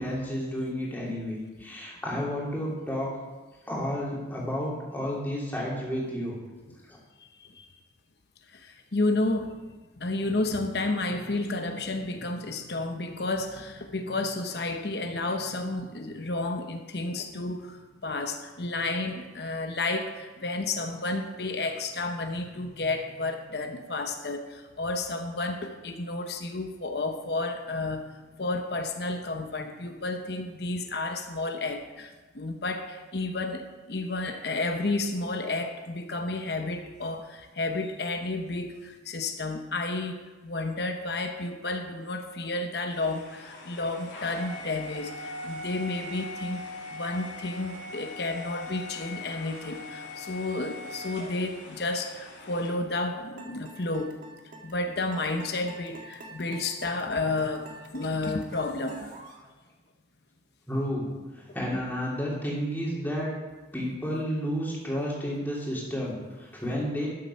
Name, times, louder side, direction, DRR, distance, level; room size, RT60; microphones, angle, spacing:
voice 1, 0.0-3.1 3.7-6.4 6.9-7.0 60.7-61.1 61.3-63.3 63.7-67.1, equal, 10° left, -5 dB, 2.9 m, -31 dB
voice 2, 7.2-7.7 8.5-9.6 10.0-28.1 28.4-46.6 46.9-54.1 54.6-59.1, left 2 dB, 60° left, 5 dB, 1.0 m, -31 dB
sound 1, 42.9-52.7, left 2 dB, 90° left, 2.9 m, -41 dB
sound 2, 53.4-59.4, right 2 dB, 45° right, 1.5 m, -47 dB
12.5 x 7.8 x 5.7 m, 1.2 s
head